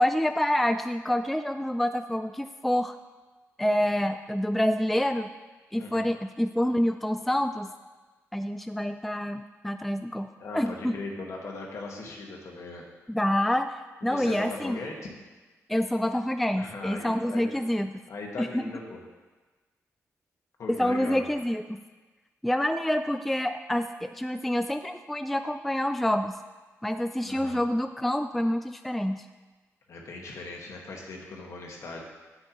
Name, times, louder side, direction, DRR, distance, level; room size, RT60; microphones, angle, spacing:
voice 1, 0.0-3.0 3.6-5.3 5.7-7.7 8.3-10.3 10.5-10.9 13.1-13.7 14.0-14.8 15.7-17.9 18.4-18.6 20.7-21.8 22.4-26.3 26.8-29.3, left 1 dB, ahead, 8 dB, 0.3 m, -27 dB
voice 2, 5.8-6.1 10.4-12.9 14.0-15.1 16.5-17.5 18.1-19.0 20.6-21.3 27.2-27.6 29.9-32.0, left 3 dB, 60° left, -1 dB, 1.7 m, -39 dB
10.0 x 7.8 x 3.0 m, 1.3 s
cardioid pair, 85°, 6 cm